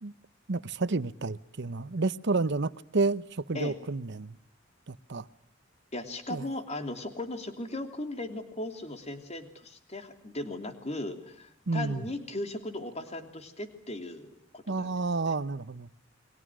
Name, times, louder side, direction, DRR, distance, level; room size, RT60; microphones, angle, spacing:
voice 1, 0.5-4.4 4.9-5.3 6.3-6.5 11.7-12.1 14.7-15.9, right 3 dB, 60° right, 0.9 m, -30 dB
voice 2, 5.9-14.9 15.2-15.3, left 2 dB, 35° left, 3.0 m, -37 dB
29.0 x 23.0 x 6.2 m
head